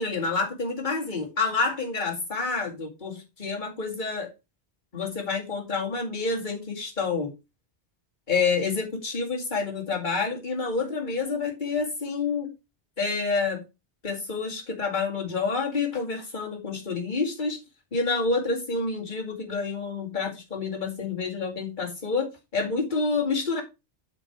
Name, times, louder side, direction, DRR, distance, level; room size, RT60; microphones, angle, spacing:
voice 1, 0.0-4.3 4.9-7.3 8.3-12.5 13.0-13.6 14.0-17.6 17.9-23.6, left 4 dB, 45° left, 2.5 m, -28 dB
7.8 x 5.4 x 4.7 m
omnidirectional pair, 1.1 m